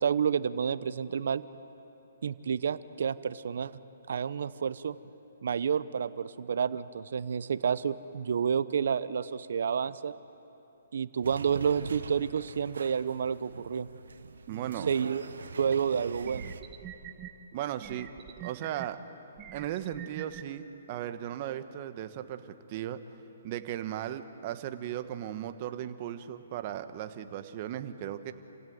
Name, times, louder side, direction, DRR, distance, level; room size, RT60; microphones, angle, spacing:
voice 1, 0.0-1.4 2.2-3.7 4.1-5.0 5.4-10.1 10.9-13.9 14.9-15.2 15.6-16.5, right 7 dB, 65° right, 15 dB, 0.9 m, -29 dB
sound 1, 11.2-16.6, right 5 dB, 80° right, 1.3 m, -43 dB
voice 2, 14.5-14.9 17.5-18.1 18.4-19.0 19.5-22.4 22.7-23.0 23.4-28.3, right 11 dB, 35° right, 10 dB, 1.2 m, -36 dB
sound 2, 15.7-15.8 16.2-17.3 17.8-18.9 19.4-20.4, right 12 dB, 20° right, 1.0 m, -44 dB
29.0 x 16.5 x 9.6 m, 3.0 s
hypercardioid pair, 150°, 0 cm